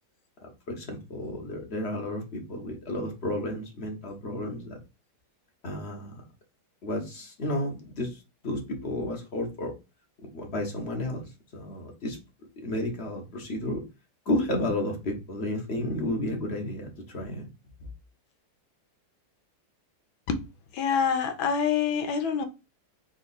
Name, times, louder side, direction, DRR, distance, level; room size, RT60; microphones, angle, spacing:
voice 1, 0.4-4.8 5.6-6.2 6.8-9.7 10.3-12.2 12.6-13.8 14.3-17.5 17.8-17.9, left 1 dB, 40° left, 1.0 m, -32 dB
voice 2, 20.7-22.5, left 6 dB, 75° left, 1.4 m, -26 dB
4.0 x 2.9 x 4.0 m
omnidirectional pair, 2.3 m